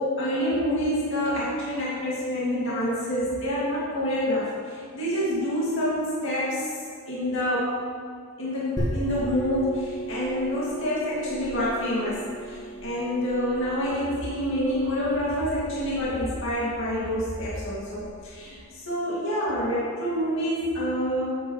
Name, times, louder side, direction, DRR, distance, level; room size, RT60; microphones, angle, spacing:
voice 1, 0.0-6.7 7.1-7.8 8.4-21.2, equal, 60° left, -8 dB, 2.3 m, -27 dB
sound 1, 8.8-18.1, right 1 dB, 15° left, 1.6 m, -37 dB
11.0 x 8.4 x 3.1 m, 2.3 s
head